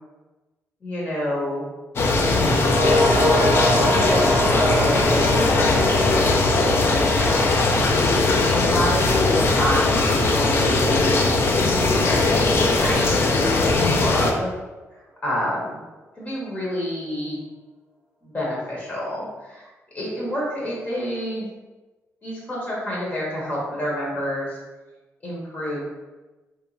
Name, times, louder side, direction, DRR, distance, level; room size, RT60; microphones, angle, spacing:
voice 1, 0.8-1.6 3.8-5.6 5.9-7.6 8.1-14.5 15.2-15.8 16.2-17.4 18.2-19.7 19.9-21.5 22.2-24.6 25.2-25.8, equal, 30° left, -5 dB, 0.8 m, -28 dB
sound 1, 2.0-14.3, left 3 dB, 50° left, 0.3 m, -19 dB
sound 2, 2.6-11.1 11.4-11.5, left 1 dB, 20° right, 0.5 m, -26 dB
2.9 x 2.2 x 2.5 m, 1.2 s
cardioid pair, 125°, 5 cm